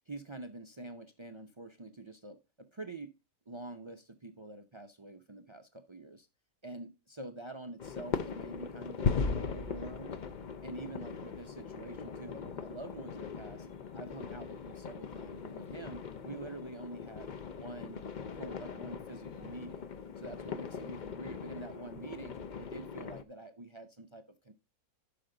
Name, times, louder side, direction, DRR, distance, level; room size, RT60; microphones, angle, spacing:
voice 1, 0.1-3.1 3.5-6.3 6.6-10.2 10.6-13.7 13.9-18.0 18.3-19.9 20.2-24.5, right 2 dB, 50° right, 0.3 m, -46 dB
sound 1, 7.8-23.2, left 5 dB, 55° left, 0.5 m, -39 dB
12.0 x 5.1 x 3.8 m
omnidirectional pair, 1.6 m